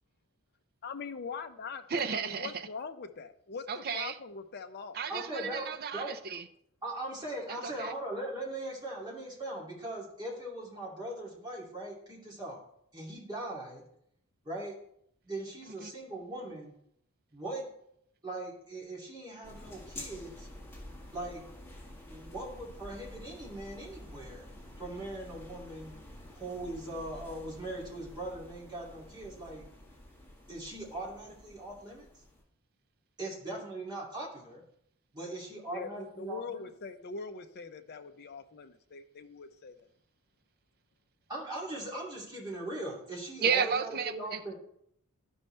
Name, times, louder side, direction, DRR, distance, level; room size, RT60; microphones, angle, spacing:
voice 1, 0.8-5.0 35.7-39.8, left 4 dB, 45° left, 0.5 m, -42 dB
voice 2, 1.9-2.6 3.7-4.2 4.9-6.4 7.5-7.9 15.8-15.9 43.4-44.5, right 6 dB, 45° right, 0.5 m, -33 dB
voice 3, 5.1-5.7 5.9-6.1 6.8-12.6 12.9-13.8 14.4-14.7 15.2-16.7 17.3-17.7 18.2-20.5 21.1-21.4 22.1-24.5 24.8-25.9 26.4-29.6 30.5-32.1 33.2-34.6 35.1-36.7 41.3-44.5, right 1 dB, 20° right, 2.6 m, -40 dB
sound 1, 19.4-32.4, left 1 dB, 10° left, 1.5 m, -49 dB
13.0 x 5.4 x 3.3 m
head